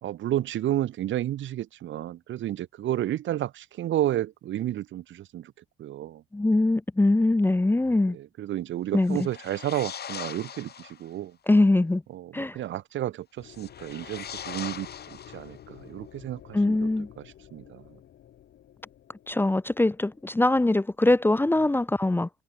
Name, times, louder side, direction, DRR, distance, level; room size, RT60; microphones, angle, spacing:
voice 1, 0.0-5.5 5.8-6.2 8.1-11.4 12.1-16.9 17.2-18.0, right 13 dB, 75° right, 1.3 m, -31 dB
voice 2, 6.3-8.2 8.9-9.2 11.5-12.0 12.3-12.6 16.5-17.1 19.3-22.3, left 2 dB, 10° left, 0.6 m, -22 dB
sound 1, 9.0-11.1 13.5-15.8, left 8 dB, 55° left, 3.0 m, -40 dB
sound 2, 13.4-21.5, left 11 dB, 70° left, 6.8 m, -52 dB
cardioid pair, 90°, 20 cm